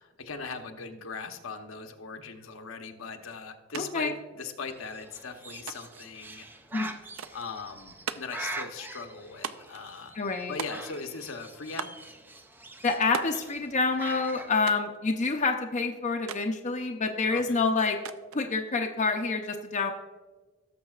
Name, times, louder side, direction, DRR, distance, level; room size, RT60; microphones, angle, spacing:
voice 1, 0.0-6.4 7.3-10.2 10.5-11.9 17.3-17.6, left 4 dB, 75° left, 5 dB, 0.9 m, -39 dB
sound 1, 3.7-3.9 4.1-4.9 5.7-6.1 7.2-7.5 8.1-8.4 9.4-9.8 10.6-11.1 11.8-12.1 13.1-13.5 14.7-15.0 16.3-16.5 18.1-18.5, right 7 dB, 80° right, 0.5 m, -38 dB
voice 2, 3.8-4.1 6.7-7.0 10.1-10.5 12.8-18.0 18.3-19.9, left 4 dB, 35° left, 3 dB, 0.6 m, -27 dB
Bird, 4.6-14.5, right 2 dB, 10° right, 0.4 m, -44 dB
17.0 x 6.8 x 2.4 m, 1.3 s
head